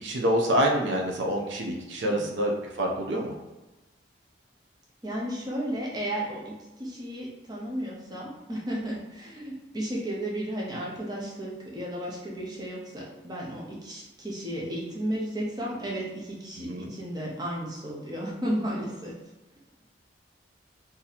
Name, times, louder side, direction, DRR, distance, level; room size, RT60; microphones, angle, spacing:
voice 1, 0.0-2.5 2.8-3.4 16.7-16.9, equal, 70° right, 1 dB, 0.5 m, -26 dB
voice 2, 5.0-19.1, right 1 dB, 20° right, -4 dB, 0.7 m, -33 dB
2.8 x 2.6 x 4.0 m, 1.1 s
head